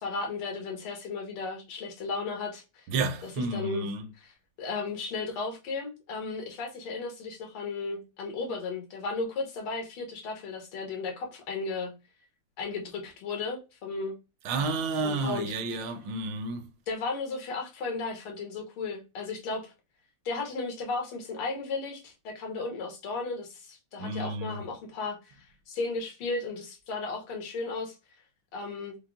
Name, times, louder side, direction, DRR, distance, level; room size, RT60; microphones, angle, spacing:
voice 1, 0.0-2.8 3.5-3.9 4.6-11.9 12.6-14.2 15.0-15.5 16.9-19.7 20.3-28.0 28.5-29.0, left 3 dB, 85° left, 2.0 m, -35 dB
voice 2, 2.9-4.1 14.4-16.7 24.0-24.6, right 3 dB, 70° right, 1.1 m, -31 dB
5.4 x 2.0 x 3.6 m
omnidirectional pair, 2.4 m